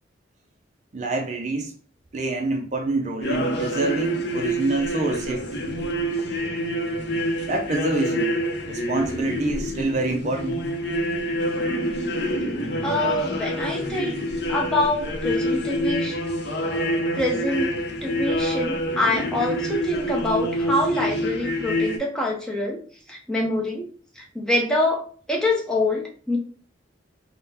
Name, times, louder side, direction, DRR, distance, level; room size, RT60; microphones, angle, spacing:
voice 1, 0.9-1.7 2.1-5.8 7.5-8.3 8.7-10.7, right 2 dB, 35° right, 0.5 m, -27 dB
sound 1, 3.2-22.0, equal, 60° left, 0.6 m, -27 dB
voice 2, 12.8-16.2 17.1-17.8 18.0-22.8 23.1-23.9 24.2-26.4, left 1 dB, 5° left, 0.7 m, -25 dB
3.7 x 2.1 x 4.1 m
head